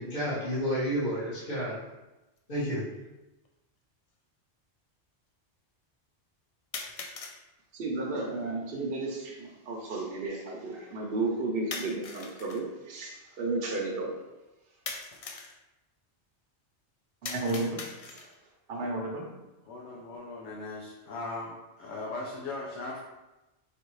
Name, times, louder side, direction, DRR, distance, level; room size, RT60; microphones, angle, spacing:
voice 1, 0.0-1.8 2.5-2.8, equal, 40° left, -10 dB, 1.4 m, -30 dB
sound 1, 2.4-2.5 3.4-3.5 6.7-7.4 11.7-12.6 14.9-15.6 17.2-18.4, left 4 dB, 60° left, 0.3 m, -40 dB
voice 2, 7.7-14.1 17.2-17.9 18.1-18.2 18.7-19.3, right 2 dB, 60° right, -1 dB, 0.9 m, -33 dB
voice 3, 19.7-23.1, left 2 dB, 85° left, -3 dB, 1.0 m, -39 dB
4.1 x 3.3 x 3.1 m, 1.0 s
omnidirectional pair, 1.2 m